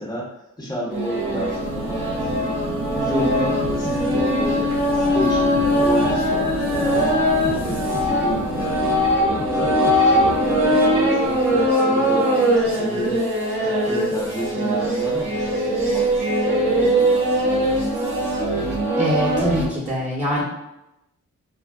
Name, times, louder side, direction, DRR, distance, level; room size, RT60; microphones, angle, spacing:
voice 1, 0.0-2.6 2.9-13.3 13.6-17.8, equal, 10° left, -5 dB, 0.8 m, -31 dB
sound 1, 0.9-19.7, equal, 90° right, 0.9 m, -21 dB
sound 2, 1.6-9.2, right 2 dB, 55° right, 0.8 m, -31 dB
sound 3, 3.6-11.3, left 4 dB, 30° left, 0.4 m, -34 dB
voice 2, 19.0-20.4, equal, 20° right, -6 dB, 0.9 m, -24 dB
2.3 x 2.1 x 3.5 m, 0.89 s
supercardioid pair, 40°, 34 cm